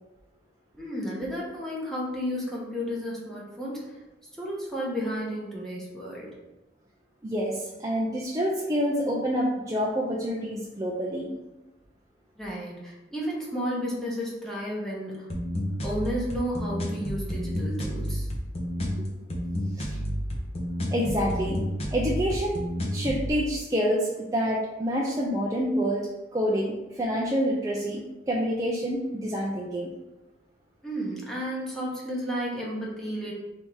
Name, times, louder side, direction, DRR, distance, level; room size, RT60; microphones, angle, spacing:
voice 1, 0.8-4.0 4.4-6.3 12.4-15.3 15.8-18.3 30.8-33.3, equal, 5° left, -5 dB, 0.9 m, -32 dB
voice 2, 7.2-11.3 19.8-20.0 20.9-21.6 21.9-22.6 22.9-26.0 26.3-28.0 28.3-29.9, equal, 20° right, -4 dB, 0.4 m, -27 dB
sound 1, 15.3-23.3, equal, 35° left, 0.7 m, -30 dB
3.4 x 2.7 x 4.5 m, 1.0 s
head